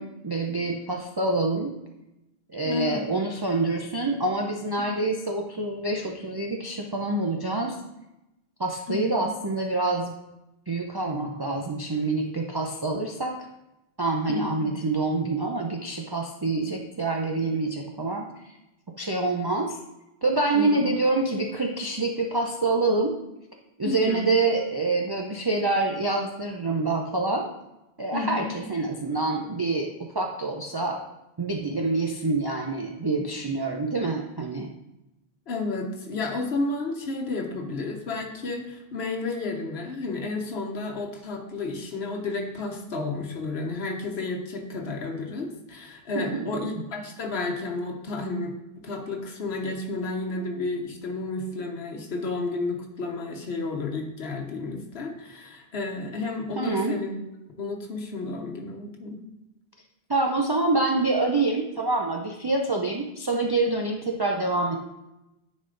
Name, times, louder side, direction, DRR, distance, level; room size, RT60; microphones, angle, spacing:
voice 1, 0.0-1.7 2.5-7.8 8.6-10.1 10.7-13.4 14.0-18.3 19.0-19.8 20.2-23.1 23.8-27.5 28.0-31.0 31.4-34.7 46.1-46.5 46.7-46.8 56.6-57.0 60.1-64.8, right 2 dB, 30° right, 0 dB, 0.5 m, -26 dB
voice 2, 2.6-3.1 8.9-9.3 14.3-14.7 20.5-20.8 23.8-24.3 28.1-28.6 35.5-57.1 57.6-59.2, left 3 dB, 75° left, 1 dB, 1.3 m, -32 dB
9.8 x 4.3 x 3.8 m, 0.92 s
omnidirectional pair, 1.1 m